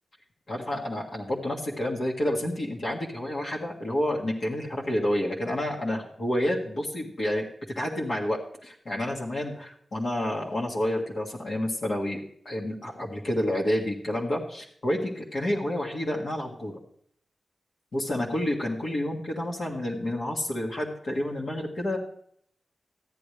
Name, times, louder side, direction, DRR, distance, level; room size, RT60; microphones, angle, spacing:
voice 1, 0.5-7.5 7.8-16.7 17.9-22.0, left 1 dB, 55° left, -3 dB, 1.7 m, -29 dB
14.0 x 9.8 x 3.3 m, 0.65 s
wide cardioid pair, 155°, 0 cm